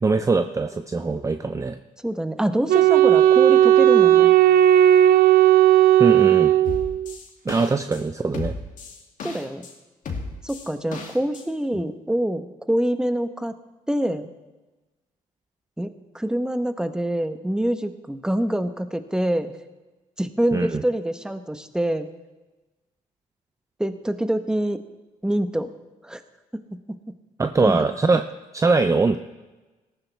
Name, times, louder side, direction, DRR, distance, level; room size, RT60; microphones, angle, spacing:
voice 1, 0.0-1.8 6.0-6.5 7.5-8.6 20.5-20.8 27.4-28.2 28.5-29.2, right 3 dB, 20° right, 8 dB, 0.6 m, -22 dB
voice 2, 2.0-4.3 9.2-9.7 10.4-13.5 13.9-14.3 15.8-19.5 20.2-22.1 23.8-24.8 25.2-25.7 26.0-26.2 26.5-26.6 26.9-27.0 27.6-27.9, right 1 dB, 5° right, 9 dB, 1.1 m, -25 dB
Wind instrument woodwind instrument, 2.7-7.1, right 12 dB, 75° right, 0.6 m, -15 dB
sound 1, 6.6-8.0 8.3-9.7 10.1-11.4, left 4 dB, 60° left, 2.5 m, -34 dB
18.5 x 14.5 x 3.5 m, 1.1 s
cardioid pair, 85°, 15 cm